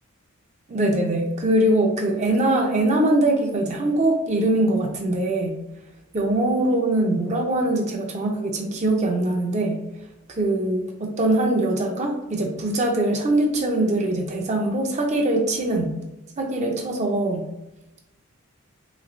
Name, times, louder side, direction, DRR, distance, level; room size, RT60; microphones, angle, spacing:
voice 1, 0.7-5.6 6.1-9.8 10.3-15.9 16.4-17.4, right 1 dB, 30° right, 1 dB, 0.5 m, -22 dB
3.6 x 3.0 x 2.5 m, 0.94 s
head